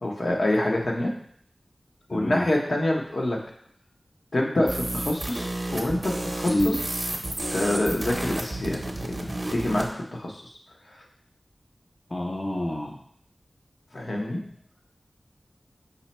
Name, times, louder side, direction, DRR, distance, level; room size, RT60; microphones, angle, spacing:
voice 1, 0.0-1.1 2.1-3.4 4.3-6.8 7.5-10.4 13.9-14.4, left 1 dB, 65° left, -1 dB, 0.8 m, -26 dB
voice 2, 2.1-2.5 6.5-6.8 12.1-13.0, left 1 dB, 35° left, -1 dB, 0.5 m, -27 dB
sound 1, 4.7-9.9, right 1 dB, 40° right, 0.7 m, -31 dB
5.5 x 2.2 x 4.1 m, 0.65 s
wide cardioid pair, 70°, 0 cm